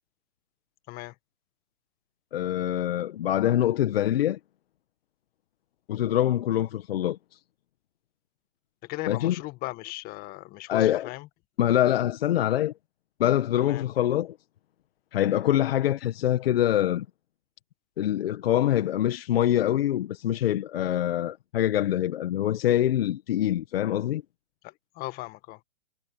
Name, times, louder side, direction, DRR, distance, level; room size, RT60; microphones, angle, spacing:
voice 1, 2.3-4.4 5.9-7.2 9.1-9.4 10.7-11.1 11.6-12.7 13.2-14.4 15.1-17.1 18.0-24.2, left 12 dB, 55° left, 1.7 m, -24 dB
voice 2, 8.8-11.3 13.6-13.8 24.6-25.6, left 20 dB, 25° left, 1.5 m, -37 dB
hypercardioid pair, 135°, 34 cm